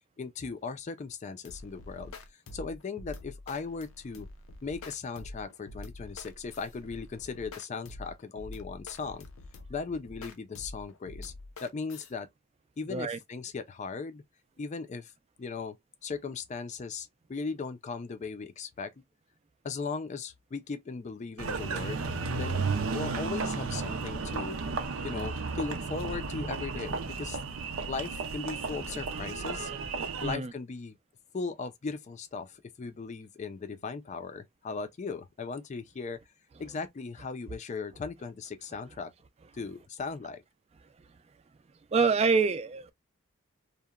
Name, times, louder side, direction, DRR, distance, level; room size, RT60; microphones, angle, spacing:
voice 1, 0.2-4.3 4.6-9.3 9.7-11.3 11.6-12.3 12.8-14.2 14.6-15.1 15.4-15.8 16.0-18.9 19.6-22.1 22.3-24.6 25.0-27.4 27.9-29.7 30.2-31.0 31.3-36.2 36.6-39.1 39.5-40.4, left 4 dB, 35° left, 0.4 m, -38 dB
sound 1, 1.4-12.1, left 2 dB, 90° left, 0.5 m, -46 dB
Engine, 21.4-30.4, right 4 dB, 85° right, 0.5 m, -33 dB
voice 2, 30.2-30.5 41.9-42.9, right 4 dB, 30° right, 0.3 m, -26 dB
2.8 x 2.1 x 2.3 m
head